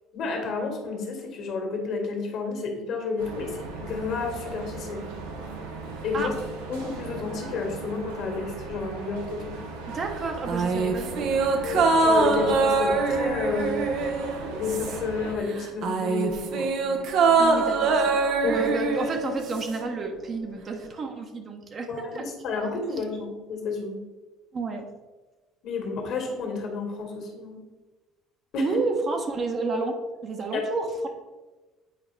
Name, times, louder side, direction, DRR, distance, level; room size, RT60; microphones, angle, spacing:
voice 1, 0.1-5.0 6.0-6.3 6.7-9.6 11.6-13.8 14.6-16.7 18.4-18.7 21.9-24.0 25.6-27.6 28.5-28.7 30.5-30.6, left 4 dB, 60° left, 2 dB, 1.8 m, -31 dB
sound 1, 3.2-15.3, right 3 dB, 80° right, 1.0 m, -38 dB
voice 2, 9.9-11.3 17.4-22.3 24.5-24.9 28.6-31.1, right 3 dB, 40° right, 3 dB, 1.1 m, -30 dB
sound 2, 10.5-15.2 15.5-19.8 20.1-20.2, right 4 dB, 60° right, 0.8 m, -24 dB
8.6 x 4.8 x 3.4 m, 1.2 s
hypercardioid pair, 60°, 0 cm